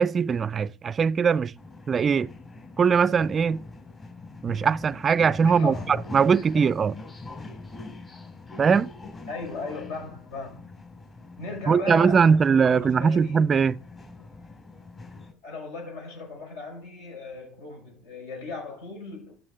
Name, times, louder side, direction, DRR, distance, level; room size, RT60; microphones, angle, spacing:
voice 1, 0.0-1.5 1.9-2.3 2.8-3.6 4.4-6.9 8.6-8.9 11.7-13.8, right 6 dB, 35° right, 0.3 m, -21 dB
sound 1, 1.6-15.3, left 3 dB, 30° left, 3.5 m, -43 dB
voice 2, 5.4-6.1 6.5-6.7 9.3-10.6 11.4-13.5 15.4-19.3, left 4 dB, 75° left, 6.1 m, -37 dB
13.0 x 6.7 x 3.7 m
hypercardioid pair, 80°, 0 cm